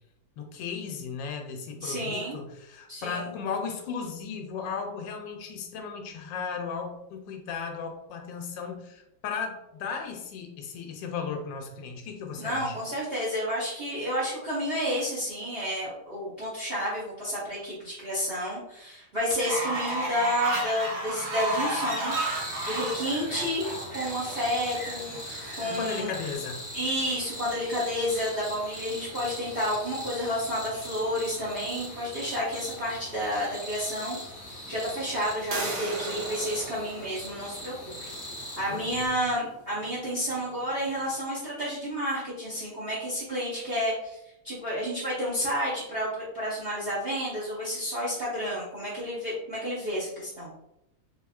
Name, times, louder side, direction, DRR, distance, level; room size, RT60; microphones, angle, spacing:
voice 1, 0.4-12.8 25.6-26.6 38.7-39.0, left 5 dB, 75° left, 3 dB, 1.2 m, -36 dB
voice 2, 1.8-2.4 2.9-3.3 12.4-23.7 23.9-26.1 26.7-34.2 34.7-37.9 38.6-44.2 44.4-50.5, equal, 50° right, -7 dB, 0.7 m, -30 dB
Fowl, 19.3-26.3, right 1 dB, 85° right, 1.8 m, -33 dB
sound 1, 22.1-39.1, equal, 25° left, 0.7 m, -40 dB
sound 2, 35.5-41.1, right 2 dB, 70° right, 1.7 m, -39 dB
3.5 x 3.2 x 2.3 m, 0.84 s
omnidirectional pair, 2.1 m